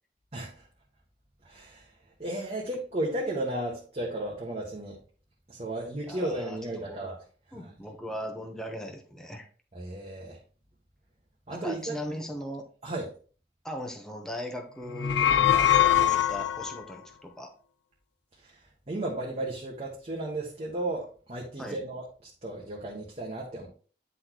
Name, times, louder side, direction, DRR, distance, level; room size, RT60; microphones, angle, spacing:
voice 1, 0.3-0.6 1.4-1.8 2.2-5.0 5.5-7.2 7.5-7.7 9.7-10.4 11.5-11.9 12.8-13.1 18.4-18.5 18.9-23.7, right 1 dB, 35° right, -4 dB, 1.2 m, -34 dB
voice 2, 6.0-7.0 7.5-9.5 11.5-12.6 13.6-17.5 21.6-21.8, equal, 5° left, 2 dB, 1.0 m, -39 dB
sound 1, 14.9-16.8, left 11 dB, 85° left, 0.4 m, -22 dB
9.7 x 4.1 x 3.0 m, 0.39 s
head